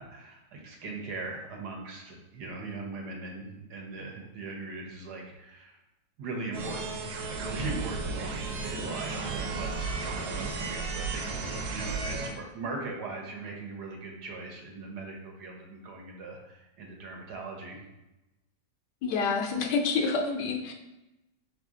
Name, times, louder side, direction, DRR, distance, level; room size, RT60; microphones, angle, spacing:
voice 1, 0.0-5.8 6.2-6.9 7.3-17.8, right 3 dB, 70° right, 0 dB, 1.3 m, -40 dB
Frequency Modulation, 6.5-12.3, right 4 dB, 85° right, 1.4 m, -34 dB
voice 2, 19.0-20.7, left 4 dB, 75° left, 3 dB, 1.2 m, -28 dB
4.0 x 3.3 x 3.6 m, 0.97 s
omnidirectional pair, 1.9 m